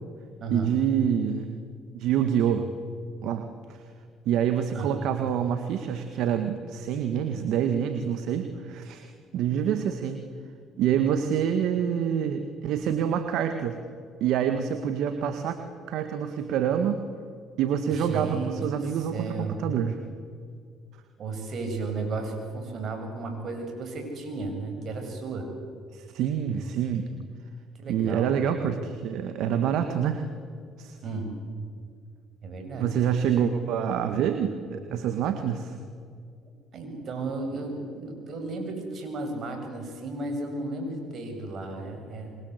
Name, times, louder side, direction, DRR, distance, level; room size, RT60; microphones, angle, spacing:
voice 1, 0.5-1.6 1.9-2.7 3.2-3.8 4.3-10.2 10.8-13.8 14.2-15.6 15.8-17.0 17.6-20.0 25.9-27.1 27.9-30.3 30.8-31.0 32.8-35.8, right 8 dB, 70° right, 8 dB, 1.8 m, -27 dB
voice 2, 17.9-18.9 19.1-19.6 21.2-25.5 27.8-28.3 31.0-31.3 32.4-32.9 36.7-42.4, right 3 dB, 55° right, 4 dB, 7.8 m, -34 dB
27.5 x 23.5 x 8.3 m, 2.2 s
supercardioid pair, 65°, 0 cm